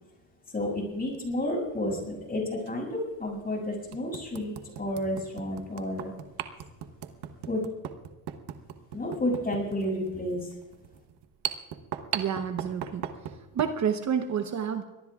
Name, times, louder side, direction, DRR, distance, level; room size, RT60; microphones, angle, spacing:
voice 1, 0.5-4.5 4.8-6.1 7.5-7.6 8.9-10.5, left 1 dB, 20° left, 0 dB, 6.9 m, -31 dB
sound 1, 0.9-1.2 2.6-2.7 3.3-3.4 3.9-13.8, right 10 dB, 65° right, 1.2 m, -38 dB
voice 2, 12.1-13.1 13.5-14.8, right 7 dB, 40° right, 7 dB, 1.0 m, -29 dB
24.0 x 19.0 x 2.4 m, 1.1 s
cardioid pair, 115°, 42 cm